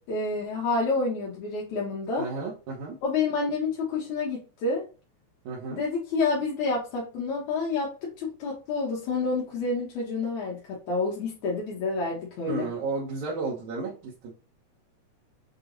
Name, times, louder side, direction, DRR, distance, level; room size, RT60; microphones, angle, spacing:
voice 1, 0.1-2.3 3.0-4.8 5.7-7.9 8.2-12.7, left 3 dB, 80° left, -4 dB, 2.4 m, -28 dB
voice 2, 2.2-3.0 5.5-5.8 12.5-14.3, right 4 dB, 75° right, -3 dB, 2.4 m, -33 dB
6.6 x 3.0 x 2.5 m, 0.34 s
omnidirectional pair, 3.4 m